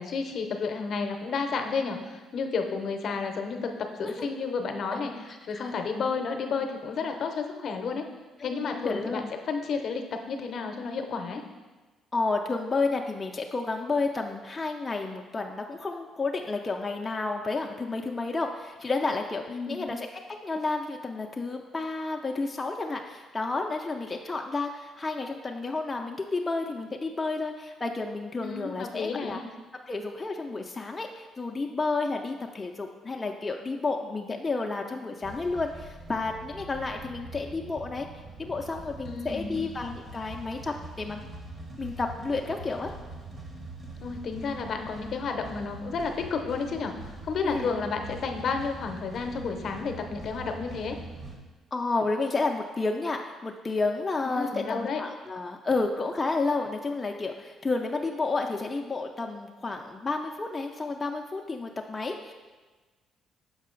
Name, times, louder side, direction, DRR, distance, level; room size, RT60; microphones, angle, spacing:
voice 1, 0.0-8.0 8.4-11.4 19.5-19.9 28.4-29.4 39.0-39.6 44.0-51.0 54.2-55.0, left 5 dB, 60° left, 5 dB, 0.7 m, -31 dB
voice 2, 5.3-5.7 8.4-9.3 12.1-20.1 20.4-29.4 29.9-38.1 38.4-41.2 41.8-42.9 47.4-47.8 51.7-62.3, left 3 dB, 25° left, 2 dB, 0.4 m, -31 dB
sound 1, 35.2-51.4, right 2 dB, 35° right, 1.1 m, -43 dB
6.4 x 4.7 x 3.8 m, 1.3 s
cardioid pair, 95°, 0 cm